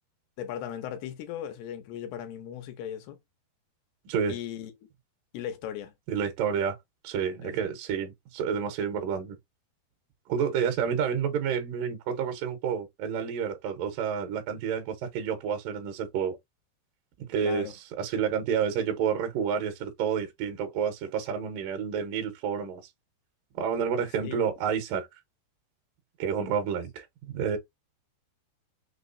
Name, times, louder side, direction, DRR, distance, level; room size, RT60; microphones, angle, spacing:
voice 1, 0.4-3.2 4.3-4.7 5.3-5.9 7.4-7.7 17.4-17.7 24.2-24.5, left 10 dB, 80° left, 2.8 m, -37 dB
voice 2, 4.1-4.4 6.1-6.8 7.0-9.4 10.3-16.4 17.2-22.8 23.5-25.1 26.2-27.6, right 7 dB, 75° right, 2.2 m, -29 dB
6.1 x 3.0 x 2.6 m
omnidirectional pair, 4.7 m